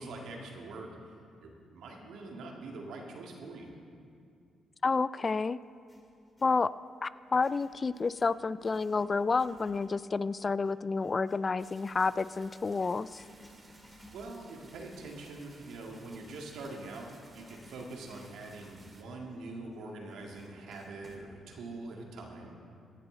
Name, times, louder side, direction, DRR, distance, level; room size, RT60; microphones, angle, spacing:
voice 1, 0.0-3.7 14.1-22.6, right 2 dB, 75° right, 0 dB, 2.0 m, -44 dB
voice 2, 4.8-5.6 6.4-6.7 7.0-13.2, left 4 dB, 40° left, 17 dB, 0.3 m, -30 dB
Writing, 5.6-6.6 7.2-17.0 17.4-21.3, equal, 20° left, 3.3 m, -59 dB
sound 1, 11.6-19.0, right 2 dB, 35° right, 2.0 m, -58 dB
17.0 x 10.5 x 3.9 m, 2.4 s
supercardioid pair, 55°, 0 cm